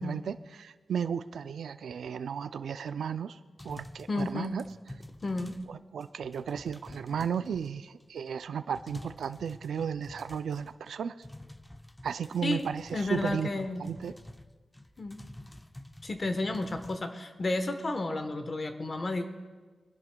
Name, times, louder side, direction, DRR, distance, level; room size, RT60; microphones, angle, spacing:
voice 1, 0.0-3.4 3.6-4.6 5.7-11.1 12.0-14.1, right 7 dB, 85° right, 12 dB, 0.3 m, -34 dB
sound 1, 3.6-5.8 6.0-8.0 8.4-8.5 8.7-10.9 11.2-17.0, left 1 dB, 10° left, 0.5 m, -49 dB
voice 2, 4.1-4.6 5.2-5.5 12.4-12.7 12.9-13.8 15.0-15.2 16.0-19.2, left 2 dB, 40° left, 7 dB, 1.0 m, -32 dB
25.0 x 10.5 x 2.3 m, 1.4 s
wide cardioid pair, 95°, 0 cm